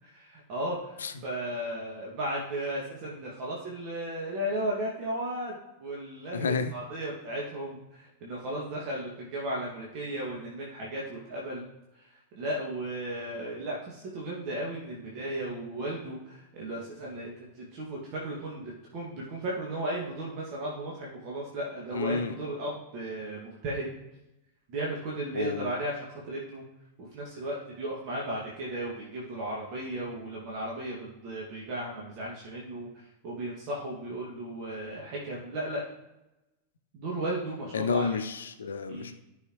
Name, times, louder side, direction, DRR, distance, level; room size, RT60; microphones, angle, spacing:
voice 1, 0.0-11.6 12.0-12.1 12.3-23.9 24.7-26.6 27.0-35.8 36.9-38.2 38.9-39.1, right 1 dB, 45° right, -4 dB, 2.0 m, -35 dB
voice 2, 6.3-6.7 21.9-22.3 25.3-25.7 37.7-39.1, left 5 dB, 70° left, 8 dB, 0.7 m, -30 dB
14.0 x 5.8 x 3.0 m, 0.98 s
figure-of-eight pair, 90°, 0 cm